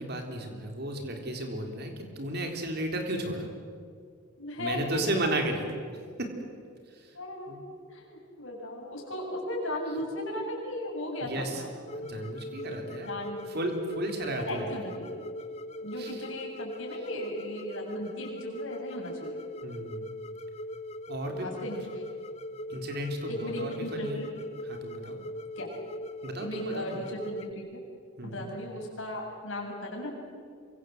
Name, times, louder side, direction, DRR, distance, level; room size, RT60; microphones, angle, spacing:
voice 1, 0.0-3.5 4.6-5.8 6.2-6.3 6.9-7.2 7.5-7.6 11.2-11.6 11.9-13.1 13.5-14.7 16.0-16.2 19.6-20.1 21.1-21.6 22.7-24.2 24.6-25.2 26.2-27.2 28.2-28.5, right 1 dB, 45° right, 3 dB, 3.7 m, -34 dB
voice 2, 4.4-5.0 7.1-7.5 7.9-11.7 13.0-13.6 14.5-15.1 15.8-19.4 21.4-22.0 23.3-24.3 25.6-25.7 26.4-27.8 28.2-30.1, left 1 dB, 60° left, -1 dB, 7.3 m, -36 dB
sound 1, 11.9-27.5, left 1 dB, 30° left, 0.6 m, -40 dB
27.0 x 24.0 x 7.9 m, 2.2 s
head